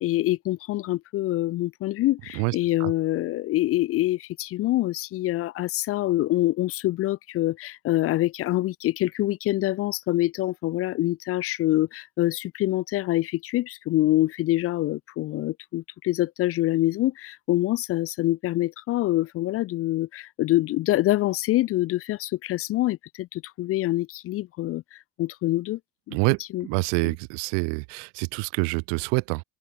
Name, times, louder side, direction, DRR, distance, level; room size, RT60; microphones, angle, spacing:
voice 1, 0.0-25.8 26.1-26.2 26.5-26.7 27.0-27.2, left 16 dB, 35° left, 0.5 m, -25 dB
voice 2, 26.1-29.4, right 38 dB, 90° right, 1.1 m, -26 dB
open air
cardioid pair, 170°, 40 cm